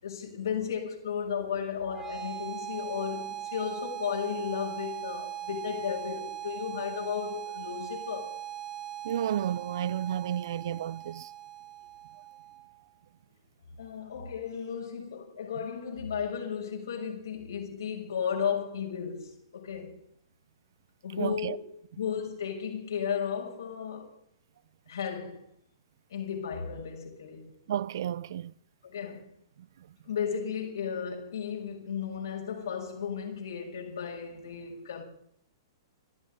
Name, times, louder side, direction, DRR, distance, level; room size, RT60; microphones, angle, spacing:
voice 1, 0.0-8.3 13.8-20.0 21.0-21.5 22.0-24.1 24.9-25.5 26.1-27.5 28.8-29.2 30.0-35.0, left 7 dB, 70° left, 6.4 m, -34 dB
sound 1, 1.8-12.8, right 12 dB, 20° right, 3.3 m, -40 dB
voice 2, 9.0-11.3 21.2-21.6 27.7-28.5 29.6-29.9, right 10 dB, 60° right, 0.6 m, -32 dB
26.5 x 14.0 x 3.8 m
figure-of-eight pair, 115°, 2 cm